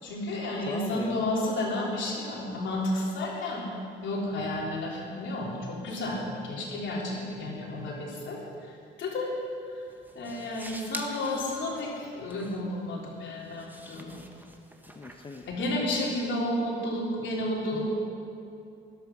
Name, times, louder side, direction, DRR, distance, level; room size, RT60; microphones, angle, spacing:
voice 1, 0.0-3.7 4.0-9.3 9.7-9.8 10.2-14.2 15.5-17.9, left 1 dB, 70° left, -3 dB, 3.5 m, -32 dB
voice 2, 0.6-1.2 14.9-15.5 17.7-17.9, left 3 dB, 25° left, 4 dB, 0.9 m, -39 dB
sound 1, 9.4-16.2, right 1 dB, 10° right, 1.3 m, -47 dB
13.0 x 11.5 x 6.0 m, 2.6 s
cardioid pair, 90°, 20 cm